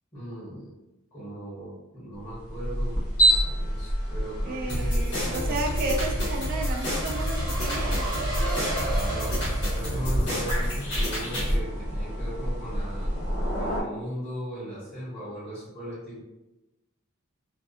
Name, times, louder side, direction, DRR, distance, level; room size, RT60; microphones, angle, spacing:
voice 1, 0.1-0.7 1.1-5.6 8.3-9.4 9.7-13.1 13.6-16.2, right 1 dB, 25° left, -12 dB, 1.0 m, -38 dB
sound 1, 2.2-13.8, right 1 dB, 90° left, 1.2 m, -29 dB
sound 2, 3.5-10.6, right 2 dB, 65° right, 0.9 m, -37 dB
voice 2, 4.5-8.1, right 2 dB, 45° right, -1 dB, 0.3 m, -33 dB
sound 3, 4.7-11.5, equal, 55° left, 1.1 m, -30 dB
2.5 x 2.2 x 2.3 m, 0.99 s
head